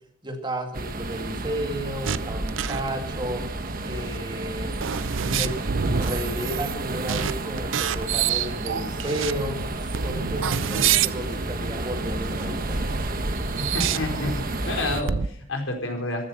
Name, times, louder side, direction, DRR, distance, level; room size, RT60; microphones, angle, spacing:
voice 1, 0.2-3.5 3.9-4.8 5.2-9.6 10.0-12.9, right 1 dB, 25° right, 3 dB, 2.3 m, -32 dB
sound 1, 0.7-15.0, right 2 dB, 45° right, 1.3 m, -31 dB
sound 2, 2.0-2.9 4.1-4.2 4.7-6.8 7.1-7.3 7.6-9.3 9.8-11.2 12.2-12.7 13.4-14.6 15.1-15.3, right 8 dB, 75° right, 0.6 m, -27 dB
sound 3, 8.3-14.4, equal, 5° right, 6.7 m, -44 dB
voice 2, 13.6-16.3, left 2 dB, 80° left, 2 dB, 4.5 m, -29 dB
14.5 x 14.0 x 5.7 m, 0.66 s
head